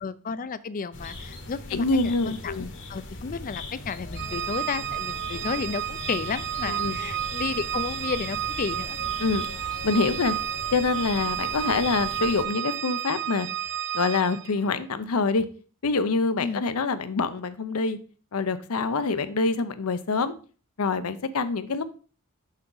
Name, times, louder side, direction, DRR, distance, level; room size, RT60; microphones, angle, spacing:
voice 1, 0.0-2.5 2.9-9.0 16.4-16.6, left 5 dB, 40° left, 16 dB, 0.4 m, -32 dB
sound 1, 0.9-12.4, left 2 dB, 60° left, 1.2 m, -40 dB
voice 2, 1.7-2.7 6.7-7.0 9.2-9.5 9.8-10.3 10.7-13.5 13.9-15.5 15.8-18.0 18.3-20.3 20.8-21.8, left 4 dB, 80° left, 12 dB, 0.6 m, -25 dB
Organ, 4.1-14.6, right 11 dB, 55° right, 0.4 m, -31 dB
6.5 x 5.8 x 3.9 m, 0.39 s
head